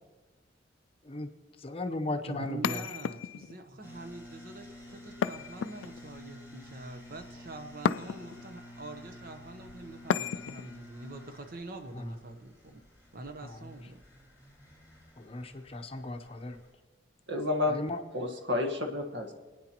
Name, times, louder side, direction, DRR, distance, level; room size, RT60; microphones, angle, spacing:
voice 1, 1.6-2.8 12.0-12.1 13.5-13.6 15.2-16.6 17.7-18.0, left 2 dB, 30° left, 6 dB, 0.7 m, -36 dB
voice 2, 2.3-12.8 13.1-14.0, right 2 dB, 50° right, 7 dB, 0.9 m, -44 dB
sound 1, 2.6-3.6 5.2-6.2 7.8-8.5 10.1-10.7, left 7 dB, 85° left, 0.3 m, -32 dB
sound 2, 3.8-16.7, left 1 dB, 10° right, 4.2 m, -51 dB
voice 3, 17.3-17.8 18.1-19.3, left 2 dB, 65° right, 4 dB, 1.4 m, -30 dB
27.5 x 9.5 x 2.9 m, 1.3 s
head